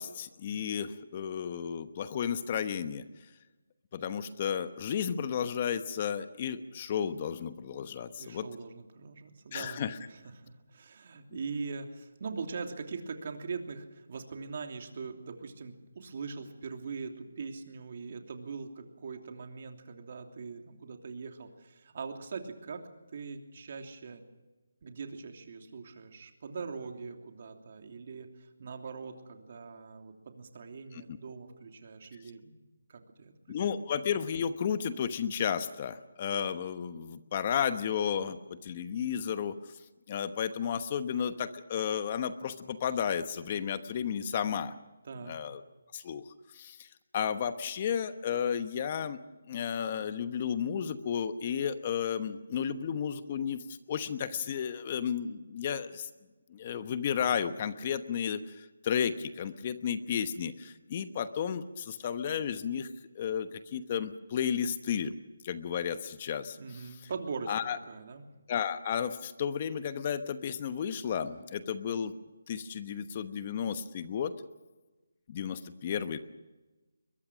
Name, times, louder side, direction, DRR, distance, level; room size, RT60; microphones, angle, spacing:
voice 1, 0.0-3.0 3.9-8.5 9.5-10.0 30.9-31.2 33.5-39.5 40.1-44.8 45.2-45.6 45.9-46.2 46.5-46.9 47.1-49.2 49.5-56.1 56.5-62.9 63.1-65.1 65.4-67.1 67.5-67.8 68.5-72.1 72.5-74.3 75.3-76.2, left 8 dB, 30° left, 12 dB, 1.1 m, -33 dB
voice 2, 8.2-22.8 23.1-24.2 24.8-28.3 28.6-32.5 32.9-33.3 45.0-45.4 66.6-68.2, right 5 dB, 45° right, 4 dB, 3.0 m, -42 dB
22.0 x 21.5 x 6.3 m, 1.2 s
hypercardioid pair, 165°, 0 cm